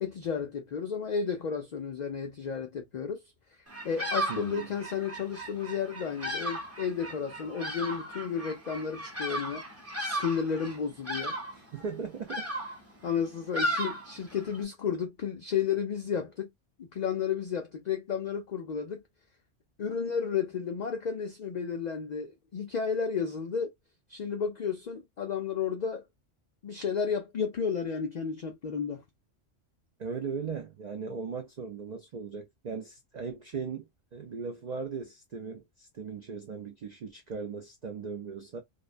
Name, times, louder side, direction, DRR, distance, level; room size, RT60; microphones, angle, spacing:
voice 1, 0.0-3.2 3.8-9.6 10.0-11.3 13.0-16.5 16.8-19.0 19.8-23.7 24.1-26.0 26.6-29.0, left 6 dB, 65° left, 0.4 m, -32 dB
Bird vocalization bird call bird song, 3.7-14.6, equal, 15° right, 0.6 m, -36 dB
voice 2, 4.3-4.7 11.5-12.5 30.0-38.6, right 5 dB, 60° right, 0.4 m, -38 dB
2.4 x 2.1 x 2.4 m
omnidirectional pair, 1.2 m